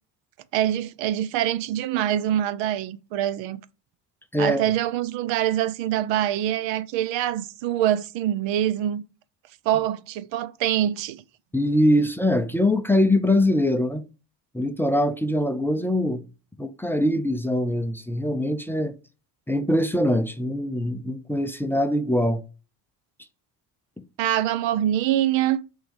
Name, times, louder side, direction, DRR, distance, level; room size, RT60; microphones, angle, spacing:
voice 1, 0.5-3.6 4.4-9.0 9.7-11.2 24.2-25.6, right 11 dB, 85° right, 0.8 m, -24 dB
voice 2, 11.5-14.0 14.5-16.2 16.6-18.9 19.5-22.4, left 1 dB, 5° left, 0.5 m, -23 dB
8.8 x 3.8 x 5.3 m
cardioid pair, 140°, 43 cm